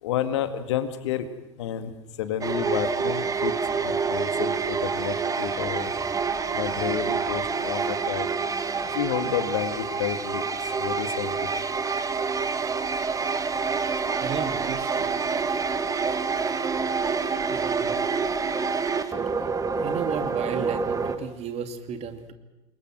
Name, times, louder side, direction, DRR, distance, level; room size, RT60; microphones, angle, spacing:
voice 1, 0.0-1.3 1.6-1.9 2.2-3.6 3.8-5.9 6.5-8.3 8.9-11.5, left 10 dB, 65° left, 10 dB, 2.1 m, -30 dB
sound 1, 2.4-21.2, right 5 dB, 20° right, 1.8 m, -27 dB
voice 2, 14.2-15.1 16.5-16.6 17.5-18.0 19.8-22.3, right 7 dB, 40° right, 8 dB, 2.6 m, -34 dB
28.0 x 22.5 x 6.2 m, 1.0 s
figure-of-eight pair, 75°, 16 cm